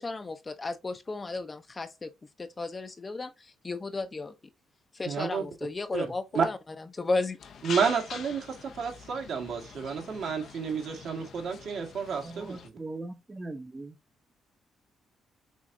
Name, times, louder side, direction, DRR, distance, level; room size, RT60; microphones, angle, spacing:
voice 1, 0.0-2.1 2.4-3.3 3.6-4.3 4.9-6.6 6.9-7.4, left 3 dB, 30° left, 0.6 m, -33 dB
voice 2, 5.0-5.5 5.9-6.1 6.3-6.5 7.6-12.7, right 6 dB, 70° right, 1.6 m, -30 dB
sound 1, 7.4-12.7, left 6 dB, 65° left, 0.7 m, -44 dB
voice 3, 12.2-14.0, right 2 dB, 20° right, 0.7 m, -40 dB
6.1 x 2.8 x 2.6 m
cardioid pair, 90°, 0 cm